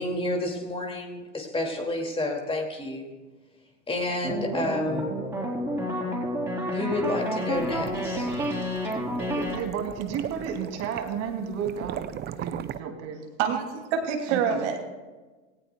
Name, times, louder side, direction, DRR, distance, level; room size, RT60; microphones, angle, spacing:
voice 1, 0.0-3.1 3.9-5.2 6.7-8.3, left 1 dB, 15° left, 2 dB, 2.3 m, -30 dB
sound 1, 4.2-9.6, equal, 5° right, 4.1 m, -29 dB
sound 2, 7.3-12.8, right 11 dB, 25° right, 0.6 m, -39 dB
voice 2, 9.4-12.0 12.4-13.2 14.3-14.6, right 7 dB, 45° right, 4 dB, 2.5 m, -32 dB
voice 3, 13.4-14.8, right 7 dB, 65° right, 2 dB, 2.6 m, -26 dB
17.5 x 17.5 x 2.3 m, 1.3 s
hypercardioid pair, 100°, 37 cm